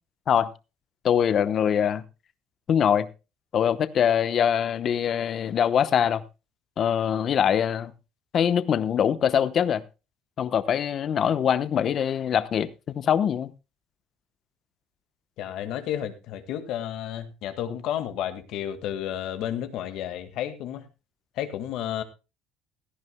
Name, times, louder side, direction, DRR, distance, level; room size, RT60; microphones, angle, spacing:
voice 1, 1.0-2.0 2.7-3.1 3.5-6.2 6.8-7.9 8.3-9.8 10.4-12.7 12.9-13.5, left 8 dB, 40° left, 0.9 m, -23 dB
voice 2, 15.4-20.9 21.4-22.0, left 10 dB, 65° left, 1.8 m, -32 dB
16.5 x 14.0 x 2.2 m
cardioid pair, 140°, 0 cm